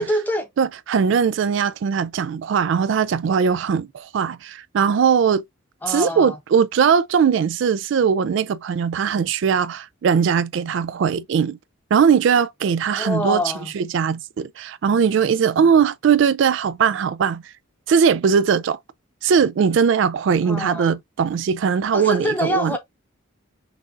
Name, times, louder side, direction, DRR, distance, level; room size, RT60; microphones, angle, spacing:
voice 1, 0.0-0.5 5.8-6.4 12.9-13.7 20.4-21.0 21.9-22.8, equal, 10° left, 0.8 m, -25 dB
voice 2, 0.6-5.4 5.9-11.6 11.9-13.4 13.7-17.4 17.9-18.8 19.2-22.8, right 6 dB, 60° right, 0.3 m, -20 dB
5.9 x 2.5 x 2.5 m
head